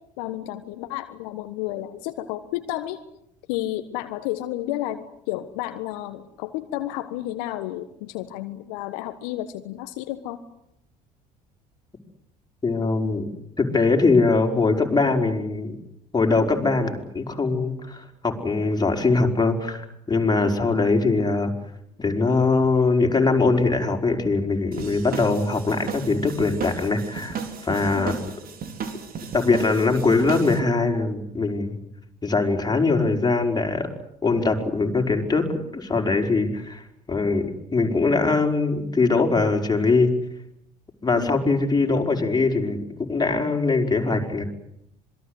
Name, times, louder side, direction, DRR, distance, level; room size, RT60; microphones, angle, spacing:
voice 1, 0.2-3.0 3.5-10.4 20.4-20.6 27.9-28.2 41.1-41.4, left 14 dB, 70° left, 9 dB, 1.5 m, -31 dB
voice 2, 12.6-13.2 13.6-15.7 16.1-21.5 22.0-28.1 29.3-31.8 32.2-33.9 34.2-40.1 41.0-44.4, left 3 dB, 20° left, 2 dB, 5.1 m, -22 dB
sound 1, 24.7-30.6, right 6 dB, 45° right, 4.2 m, -34 dB
26.5 x 22.0 x 8.1 m, 0.79 s
hypercardioid pair, 60°, 21 cm